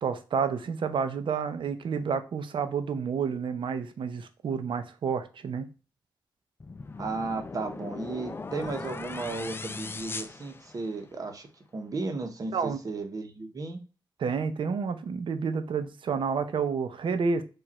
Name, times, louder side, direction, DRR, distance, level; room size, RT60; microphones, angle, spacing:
voice 1, 0.0-5.7 12.5-12.8 14.2-17.4, right 6 dB, 85° right, 0.6 m, -30 dB
sound 1, 6.6-11.2, left 3 dB, 30° left, 0.4 m, -39 dB
voice 2, 7.0-13.8, right 3 dB, 45° right, 0.9 m, -35 dB
4.9 x 2.5 x 4.1 m
wide cardioid pair, 120°, 8 cm